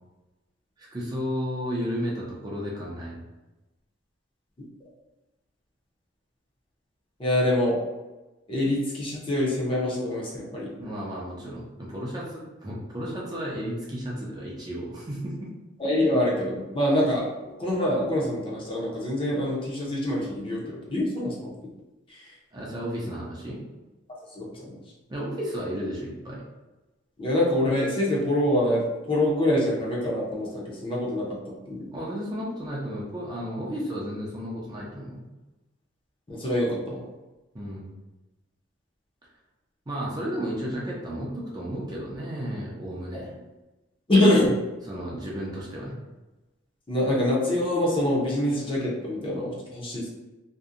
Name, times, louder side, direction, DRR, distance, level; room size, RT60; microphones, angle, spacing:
voice 1, 0.8-3.2 10.8-15.5 22.5-23.6 25.1-26.4 31.9-35.3 37.5-37.9 39.9-43.3 44.9-45.9, equal, 20° right, -5 dB, 0.4 m, -33 dB
voice 2, 7.2-7.8 8.5-10.7 15.8-17.3 17.6-21.5 22.1-22.3 24.3-24.8 27.2-31.9 36.3-37.0 43.1-43.2 44.1-44.6 46.9-50.1, left 1 dB, 25° left, -4 dB, 0.5 m, -25 dB
2.6 x 2.1 x 2.4 m, 1.1 s
head